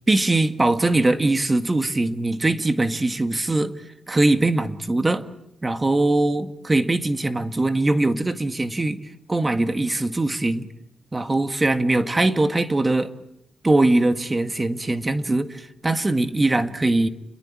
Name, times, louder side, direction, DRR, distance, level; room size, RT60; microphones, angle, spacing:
voice 1, 0.1-3.7 4.1-5.3 5.6-10.7 11.1-13.1 13.6-17.1, right 2 dB, 25° right, 1.8 m, -21 dB
29.5 x 21.5 x 8.7 m
cardioid pair, 70°, 0 cm